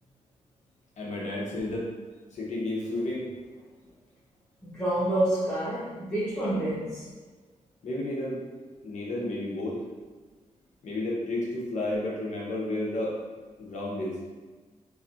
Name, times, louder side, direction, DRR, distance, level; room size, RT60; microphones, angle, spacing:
voice 1, 1.0-1.8 2.3-3.3 7.8-8.4 8.8-9.8 10.8-13.1 13.6-14.1, left 1 dB, 65° left, -4 dB, 0.9 m, -31 dB
voice 2, 4.6-7.0, right 1 dB, 10° left, -10 dB, 0.8 m, -28 dB
3.1 x 2.7 x 2.5 m, 1.4 s
cardioid pair, 100°, 13 cm